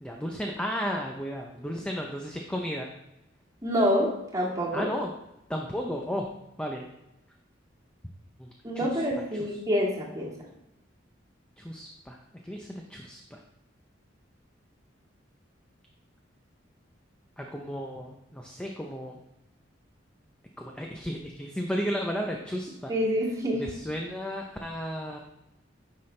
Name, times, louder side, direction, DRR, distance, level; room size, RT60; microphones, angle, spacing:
voice 1, 0.0-2.9 4.7-5.1 5.5-6.3 6.6-6.9 8.4-8.5 8.7-9.0 11.6-12.2 12.4-13.4 17.4-19.2 20.6-22.9 23.5-25.2, equal, 5° left, 1 dB, 0.5 m, -34 dB
voice 2, 3.6-4.9 8.6-10.3 22.9-23.6, equal, 15° right, -5 dB, 1.8 m, -27 dB
9.7 x 5.8 x 3.2 m, 0.89 s
head